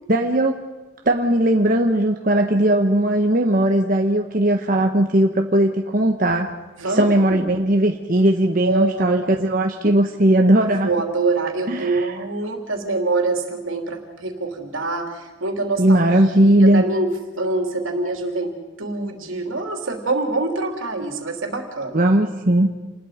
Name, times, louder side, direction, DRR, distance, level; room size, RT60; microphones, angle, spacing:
voice 1, 0.1-0.6 1.1-6.5 6.9-10.9 11.7-12.1 15.8-16.8 21.9-22.7, right 1 dB, 45° right, 3 dB, 1.2 m, -18 dB
voice 2, 6.8-7.6 8.6-9.4 10.7-16.0 16.4-22.1, right 3 dB, 85° right, 3 dB, 3.2 m, -25 dB
28.5 x 20.5 x 5.1 m, 1.2 s
head